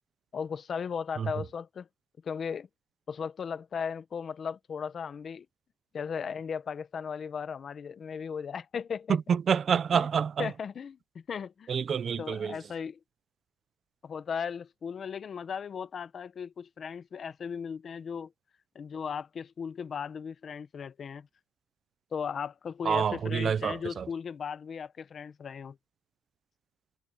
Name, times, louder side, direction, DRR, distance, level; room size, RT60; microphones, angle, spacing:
voice 1, 0.3-1.9 2.2-2.7 3.1-5.5 5.9-9.2 9.9-10.1 10.4-11.7 12.2-13.0 14.0-18.3 18.7-21.3 22.1-25.8, left 6 dB, 30° left, 1.0 m, -36 dB
voice 2, 9.1-10.5 11.7-12.6 22.8-24.1, right 7 dB, 30° right, 0.5 m, -28 dB
cardioid pair, 165°, 0 cm